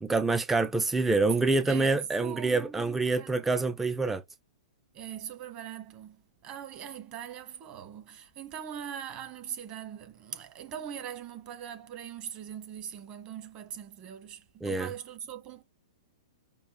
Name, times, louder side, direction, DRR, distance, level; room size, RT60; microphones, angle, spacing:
voice 1, 0.0-4.2 14.6-14.9, right 3 dB, 5° right, 0.3 m, -26 dB
voice 2, 1.7-3.4 4.9-15.6, right 9 dB, 35° right, 1.1 m, -41 dB
5.3 x 2.1 x 4.5 m
figure-of-eight pair, 110°, 3 cm